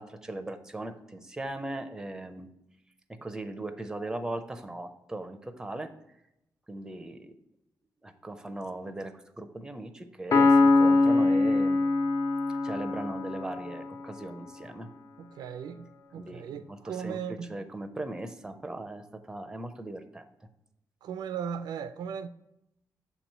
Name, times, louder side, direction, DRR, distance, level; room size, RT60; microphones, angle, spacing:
voice 1, 0.0-2.5 3.1-5.9 6.7-7.3 8.0-11.8 12.5-14.9 16.1-20.3, right 2 dB, 10° right, 0.5 m, -38 dB
Piano, 10.3-13.9, left 3 dB, 50° left, 0.6 m, -23 dB
voice 2, 15.2-17.5 21.0-22.3, right 7 dB, 90° right, 0.4 m, -37 dB
6.9 x 3.0 x 5.4 m
cardioid pair, 115°, 7 cm